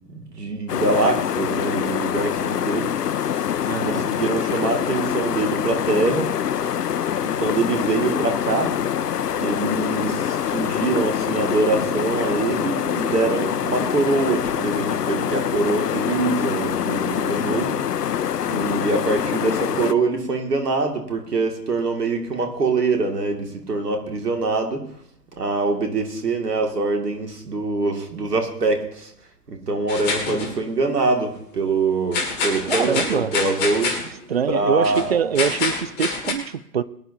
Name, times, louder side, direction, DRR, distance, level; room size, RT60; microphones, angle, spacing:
voice 1, 0.1-3.3 3.8-6.3 7.2-8.8 9.4-17.9 18.4-24.9 25.4-29.1 29.5-34.1 34.5-35.1, right 3 dB, 70° right, 4 dB, 2.5 m, -24 dB
sound 1, 0.7-19.9, left 9 dB, 70° left, 0.7 m, -25 dB
voice 2, 3.6-4.0 32.6-33.3 34.3-36.8, right 7 dB, 40° right, 15 dB, 0.5 m, -24 dB
sound 2, 29.9-30.6 32.1-34.1 34.8-35.1 35.4-36.3, left 4 dB, 20° left, 2.2 m, -26 dB
22.5 x 10.5 x 2.8 m, 0.71 s
figure-of-eight pair, 125°, 50 cm